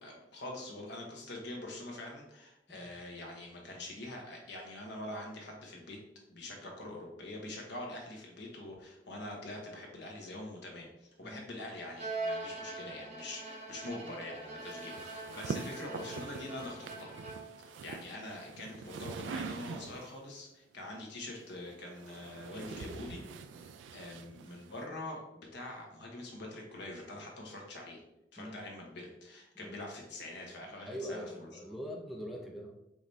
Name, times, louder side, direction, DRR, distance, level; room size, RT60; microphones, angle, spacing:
voice 1, 0.0-6.0 6.3-17.2 17.6-23.2 23.6-28.0 28.3-31.2, left 1 dB, 70° left, 0 dB, 1.1 m, -44 dB
Bowed string instrument, 12.0-17.7, right 2 dB, 40° right, 0.7 m, -42 dB
sound 1, 14.6-20.2 21.3-24.8, right 5 dB, 90° right, 0.3 m, -44 dB
voice 2, 30.8-32.7, equal, ahead, -1 dB, 0.4 m, -43 dB
4.9 x 3.3 x 2.7 m, 0.86 s
head